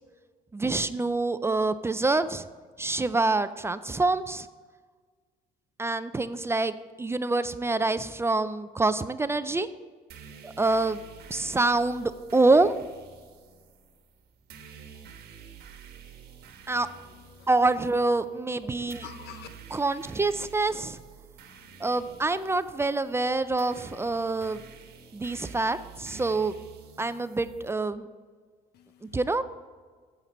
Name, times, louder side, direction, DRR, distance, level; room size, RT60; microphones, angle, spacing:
voice 1, 0.5-2.5 2.8-4.5 5.8-9.7 10.4-11.0 11.3-12.7 16.7-16.9 17.5-19.1 19.7-21.0 21.8-24.6 25.1-26.5 27.0-28.1 29.1-29.4, right 3 dB, 15° right, 12 dB, 0.4 m, -26 dB
sound 1, 10.1-27.7, right 6 dB, 75° right, 1.2 m, -49 dB
voice 2, 18.6-19.5 28.7-29.2, left 9 dB, 75° left, 10 dB, 0.8 m, -48 dB
9.1 x 7.9 x 4.2 m, 1.5 s
cardioid pair, 110°, 17 cm